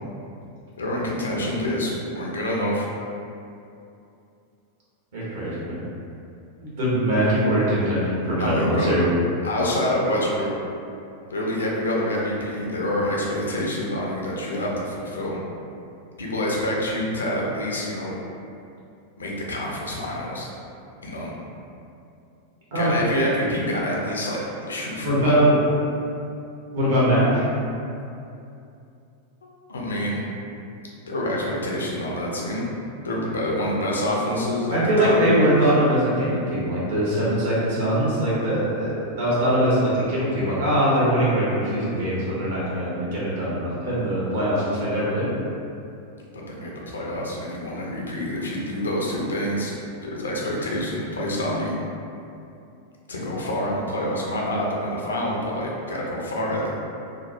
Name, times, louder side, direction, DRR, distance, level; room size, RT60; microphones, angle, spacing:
voice 1, 0.8-2.9 8.4-8.9 9.4-10.5 11.3-15.4 16.2-18.2 19.2-20.5 21.0-21.3 22.7-25.4 29.7-30.3 31.1-32.6 33.0-35.2 46.3-49.7 50.0-51.8 53.1-56.7, left 1 dB, 70° left, -3 dB, 0.4 m, -27 dB
voice 2, 5.1-5.8 6.6-9.0 22.7-22.9 25.0-25.5 26.7-27.5 34.7-45.3, equal, 55° right, -8 dB, 0.9 m, -22 dB
2.9 x 2.1 x 2.5 m, 2.6 s
figure-of-eight pair, 90°, 0 cm